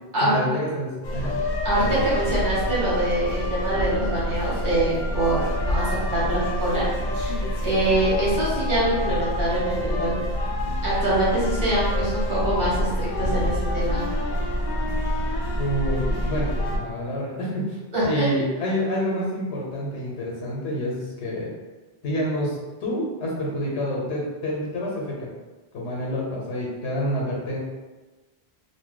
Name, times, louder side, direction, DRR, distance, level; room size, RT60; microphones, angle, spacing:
voice 1, 0.2-1.4 1.8-2.1 15.6-21.5 22.0-25.3 25.7-27.6, equal, 90° left, -3 dB, 1.0 m, -28 dB
sound 1, 1.0-16.8, equal, 60° left, 0.5 m, -27 dB
voice 2, 1.6-6.8 7.1-10.2 10.8-14.0 17.9-18.3, right 1 dB, 50° right, -9 dB, 1.4 m, -24 dB
2.6 x 2.2 x 3.7 m, 1.2 s
omnidirectional pair, 1.1 m